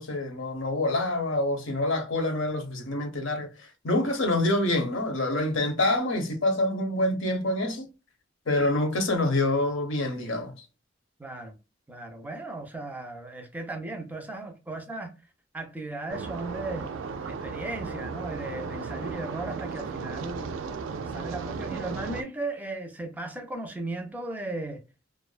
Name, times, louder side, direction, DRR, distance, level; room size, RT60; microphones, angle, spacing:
voice 1, 0.0-7.9 8.5-10.5, left 2 dB, 85° left, 0.9 m, -26 dB
voice 2, 11.2-11.6 11.9-15.1 15.5-16.9 17.2-20.5 21.1-24.8, right 2 dB, 10° right, 0.4 m, -36 dB
sound 1, 16.1-22.2, right 5 dB, 85° right, 0.3 m, -35 dB
2.5 x 2.2 x 2.4 m
head